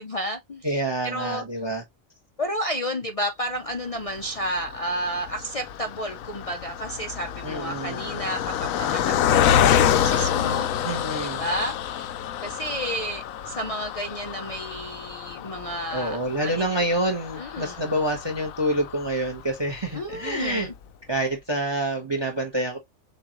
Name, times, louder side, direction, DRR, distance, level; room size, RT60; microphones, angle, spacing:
voice 1, 0.0-1.4 2.4-10.7 11.2-12.0 12.4-16.2 16.4-16.5 17.4-17.8 19.9-20.7, equal, 50° left, 0.4 m, -31 dB
voice 2, 0.6-1.8 7.4-8.0 10.8-11.4 15.9-20.7 21.1-22.8, right 1 dB, 20° right, 1.0 m, -27 dB
Car passing by, 4.1-19.6 20.1-20.2 20.5-20.7, left 9 dB, 90° left, 1.1 m, -27 dB
6.7 x 2.5 x 3.0 m
omnidirectional pair, 1.4 m